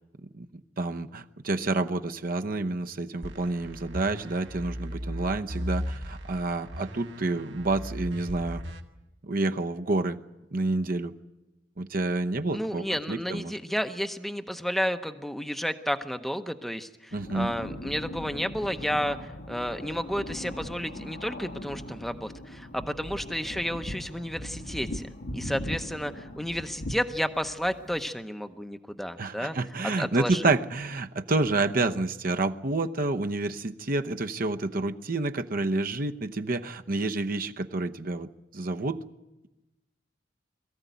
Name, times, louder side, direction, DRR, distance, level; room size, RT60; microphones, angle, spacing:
voice 1, 0.3-8.6 9.2-10.2 10.5-11.1 11.8-13.5 17.1-17.5 29.2-39.0, right 2 dB, 50° right, 7 dB, 0.9 m, -29 dB
sound 1, 3.2-8.8, equal, 75° right, 1.8 m, -37 dB
voice 2, 12.5-25.1 25.3-29.6 30.0-30.5, equal, ahead, 7 dB, 0.8 m, -32 dB
sound 2, 17.1-28.1, left 1 dB, 70° left, 1.5 m, -39 dB
22.5 x 14.5 x 9.3 m, 1.0 s
head